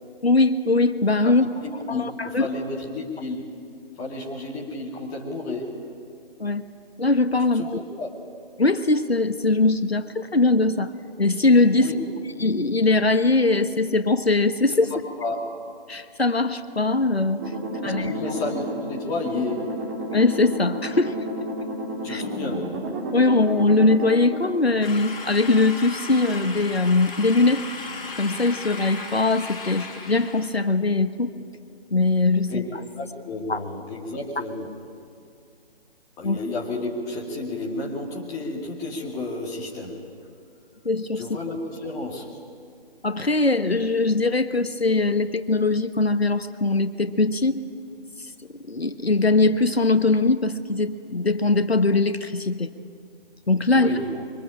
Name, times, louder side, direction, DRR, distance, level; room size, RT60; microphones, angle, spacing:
voice 1, 0.2-1.5 1.9-2.5 6.4-6.7 7.0-7.8 8.6-10.9 11.2-11.9 12.4-14.9 15.9-17.4 17.8-18.2 20.1-21.2 22.1-22.2 23.1-27.6 28.1-31.3 31.9-32.8 33.5-33.6 36.2-36.4 40.8-41.2 43.0-47.6 48.7-52.7 53.5-53.9, left 3 dB, 80° left, 10 dB, 1.3 m, -21 dB
voice 2, 1.6-3.6 4.0-5.9 7.6-7.7 7.9-8.1 11.7-12.1 14.9-15.4 17.6-19.8 22.0-22.8 32.5-32.6 32.9-34.7 36.2-40.0 41.1-42.3 53.7-54.2, left 2 dB, 10° left, -3 dB, 2.3 m, -31 dB
sound 1, 17.4-24.5, equal, 20° right, 2.5 m, -31 dB
sound 2, 24.8-30.5, left 3 dB, 40° left, 5.3 m, -36 dB
26.0 x 24.0 x 8.9 m, 2.3 s
figure-of-eight pair, 150°, 31 cm